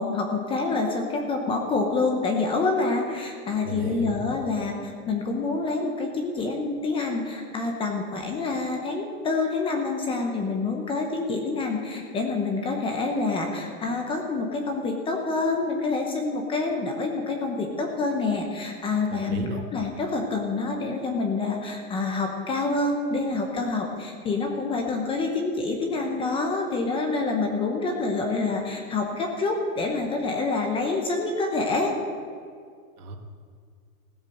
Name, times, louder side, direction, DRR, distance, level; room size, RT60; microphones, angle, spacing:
voice 1, 0.0-31.9, left 3 dB, 10° left, 3 dB, 0.8 m, -27 dB
voice 2, 3.6-4.3 19.1-19.6 33.0-33.2, right 3 dB, 70° right, 3 dB, 2.1 m, -34 dB
16.0 x 7.4 x 6.5 m, 2.1 s
hypercardioid pair, 150°, 46 cm